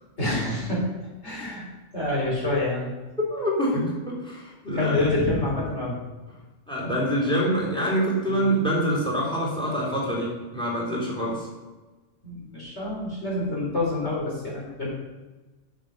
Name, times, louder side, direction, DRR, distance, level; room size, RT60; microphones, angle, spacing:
voice 1, 0.2-0.8 1.2-1.7 1.9-2.9 4.7-6.0 8.3-8.5 12.2-14.9, left 2 dB, 65° left, -4 dB, 4.3 m, -27 dB
voice 2, 3.3-5.1 6.7-11.5, equal, 5° left, -4 dB, 3.4 m, -26 dB
12.5 x 6.7 x 5.4 m, 1.2 s
omnidirectional pair, 1.2 m